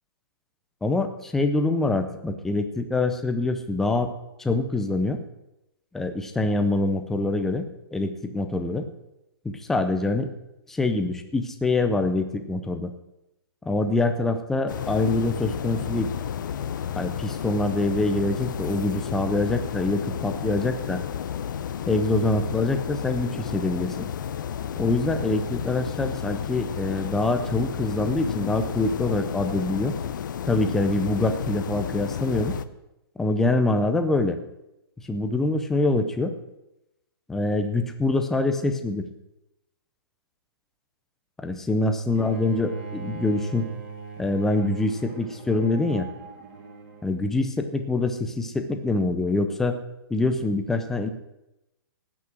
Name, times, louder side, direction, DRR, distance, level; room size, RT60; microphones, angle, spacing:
voice 1, 0.8-4.1 4.4-5.2 5.9-8.9 9.4-10.3 10.7-12.9 13.6-16.1 17.0-21.0 21.9-24.1 24.8-30.0 30.5-32.6 33.2-34.4 35.1-36.3 37.3-39.0 41.4-43.7 44.2-46.1 47.0-49.8 50.1-51.1, left 2 dB, 5° left, 7 dB, 0.5 m, -25 dB
sound 1, 14.7-32.7, left 8 dB, 50° left, 0.7 m, -32 dB
Bowed string instrument, 42.1-47.2, right 4 dB, 25° right, 1.6 m, -39 dB
16.5 x 6.2 x 7.5 m, 0.91 s
hypercardioid pair, 170°, 13 cm